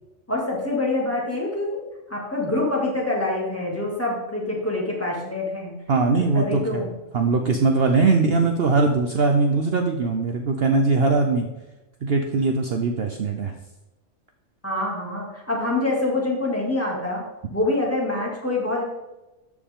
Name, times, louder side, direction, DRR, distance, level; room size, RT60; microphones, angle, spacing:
voice 1, 0.3-1.8 2.1-5.7 6.3-6.9 8.1-8.2 14.6-17.2 17.5-18.8, left 2 dB, 10° left, -4 dB, 2.3 m, -25 dB
voice 2, 5.9-6.8 7.1-11.5 12.0-13.5, right 3 dB, 55° right, 4 dB, 0.9 m, -21 dB
13.5 x 5.0 x 3.7 m, 1.0 s
omnidirectional pair, 1.4 m